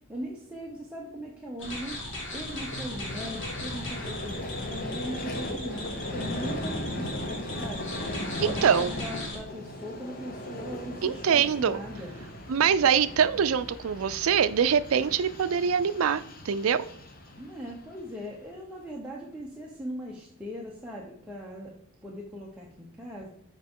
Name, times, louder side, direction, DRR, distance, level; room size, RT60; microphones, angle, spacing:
voice 1, 0.1-2.0 2.3-7.9 8.4-12.1 17.4-23.3, equal, 5° right, -4 dB, 0.8 m, -40 dB
sound 1, 1.6-9.4, left 1 dB, 60° left, 1.9 m, -38 dB
Vehicle, 1.9-18.2, left 1 dB, 45° left, 0.9 m, -38 dB
voice 2, 8.4-8.9 11.0-11.8 12.5-16.9, right 7 dB, 75° right, 14 dB, 0.4 m, -24 dB
6.5 x 4.9 x 3.7 m, 0.73 s
head